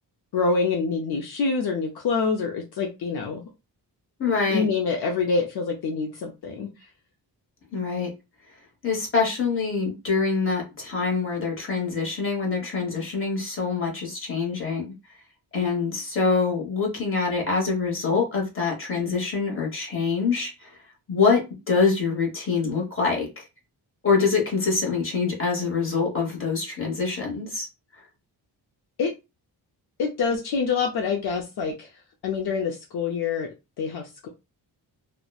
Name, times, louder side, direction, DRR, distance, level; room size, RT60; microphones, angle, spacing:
voice 1, 0.3-3.4 4.5-6.7 29.0-29.1 30.0-31.9 32.2-34.3, left 4 dB, 65° left, 0.6 m, -26 dB
voice 2, 4.2-4.6 7.7-8.1 8.8-14.9 15.5-20.7 21.1-21.4 21.7-23.3 24.0-27.7, left 4 dB, 30° left, 1.1 m, -25 dB
2.9 x 2.1 x 2.3 m
wide cardioid pair, 135°, 40 cm